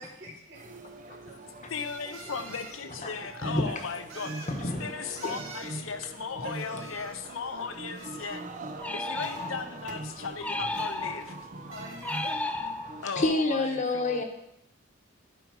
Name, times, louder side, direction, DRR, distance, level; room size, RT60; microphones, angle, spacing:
voice 1, 0.0-1.7 2.0-2.4 2.8-2.9 3.4-3.8 5.0-5.2 6.4-8.3 8.8-9.8 11.5-12.4, equal, 60° right, 2.2 m, -48 dB
sound 1, 0.5-13.2, right 2 dB, 40° right, 0.6 m, -42 dB
sound 2, 0.8-0.9 2.1-2.8 4.1-4.6 5.2-5.8 6.5-7.3 7.9-8.8 9.2-9.8 10.7-11.4 11.7-12.4, right 3 dB, 80° right, 1.6 m, -47 dB
voice 2, 1.7-4.5 4.8-8.4 8.9-11.4 13.0-14.2, left 5 dB, 75° left, 0.7 m, -37 dB
voice 3, 4.5-5.3 13.2-14.2, left 2 dB, 35° left, 1.1 m, -28 dB
sound 3, 8.8-9.8 10.4-11.5 12.0-13.2, left 2 dB, 5° left, 0.3 m, -34 dB
11.0 x 5.1 x 4.8 m
head